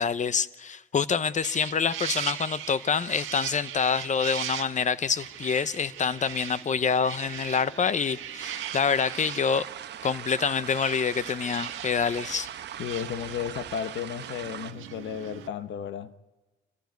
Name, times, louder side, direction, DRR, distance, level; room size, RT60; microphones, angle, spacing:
voice 1, 0.0-9.7 10.0-12.5, left 6 dB, 35° left, 0.8 m, -26 dB
sound 1, 1.4-15.5, right 11 dB, 85° right, 1.5 m, -39 dB
sound 2, 8.4-14.7, right 10 dB, 60° right, 1.0 m, -41 dB
voice 2, 12.8-16.2, left 9 dB, 70° left, 1.1 m, -34 dB
28.0 x 15.0 x 9.5 m
cardioid pair, 90°, 20 cm